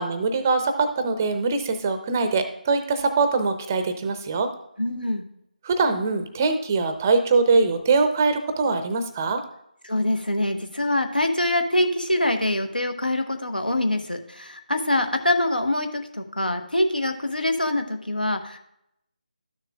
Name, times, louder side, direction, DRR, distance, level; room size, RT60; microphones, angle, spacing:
voice 1, 0.0-4.5 5.6-9.4, right 4 dB, 20° right, 8 dB, 0.5 m, -22 dB
voice 2, 4.8-5.2 9.8-18.6, left 1 dB, 80° left, 6 dB, 1.1 m, -24 dB
12.5 x 6.6 x 2.3 m, 0.78 s
figure-of-eight pair, 155°, 5 cm